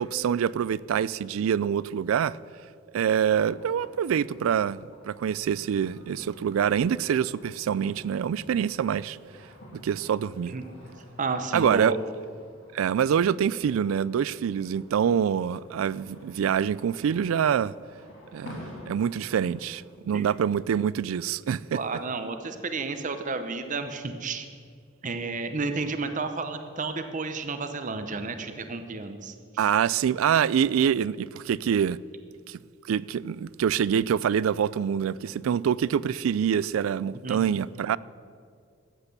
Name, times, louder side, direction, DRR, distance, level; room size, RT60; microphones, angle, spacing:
voice 1, 0.0-2.4 2.9-9.2 9.7-10.5 11.5-11.9 12.7-17.7 18.3-21.8 29.6-32.0 32.5-32.6 32.9-38.0, right 8 dB, 80° right, 0.3 m, -25 dB
sound 1, 3.3-19.9, left 1 dB, 65° left, 2.6 m, -50 dB
voice 2, 11.2-12.0 20.1-20.3 21.7-24.5 25.0-29.7 37.2-37.4, right 3 dB, 40° right, 0.8 m, -32 dB
13.5 x 8.3 x 6.8 m
head